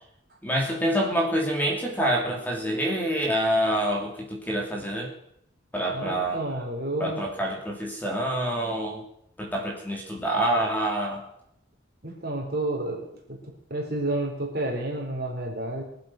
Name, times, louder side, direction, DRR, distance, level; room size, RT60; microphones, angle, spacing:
voice 1, 0.4-5.1 5.7-6.6 7.0-9.0 9.4-11.2, right 1 dB, 10° left, 0 dB, 2.8 m, -27 dB
voice 2, 5.9-7.2 12.0-13.4 13.7-15.8, right 1 dB, 50° right, 1 dB, 4.2 m, -30 dB
23.5 x 7.9 x 6.1 m, 0.74 s
head